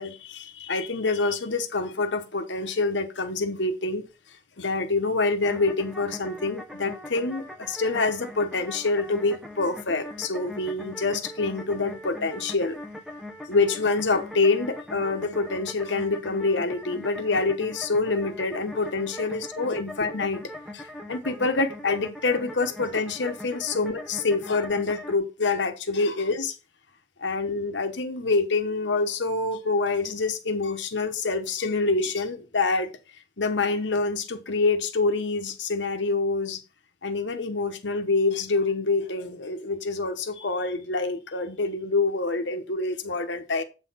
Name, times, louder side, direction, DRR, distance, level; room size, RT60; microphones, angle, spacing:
voice 1, 0.0-4.0 4.6-12.8 13.5-20.4 20.7-26.5 27.2-32.9 33.4-36.6 37.0-43.6, left 3 dB, 85° left, 1.1 m, -26 dB
sound 1, 5.4-25.2, left 1 dB, ahead, 0.8 m, -40 dB
8.1 x 4.1 x 5.7 m
head